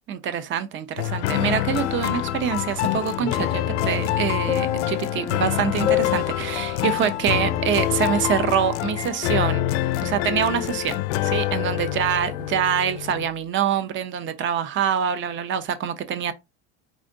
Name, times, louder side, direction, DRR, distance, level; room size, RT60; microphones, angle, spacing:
voice 1, 0.1-9.7 10.0-16.3, right 8 dB, 35° right, 0.8 m, -25 dB
sound 1, 1.0-13.3, left 13 dB, 85° left, 0.6 m, -26 dB
sound 2, 3.2-8.6 9.0-9.1, left 10 dB, 15° left, 0.6 m, -31 dB
4.9 x 2.6 x 3.8 m
supercardioid pair, 125°, 34 cm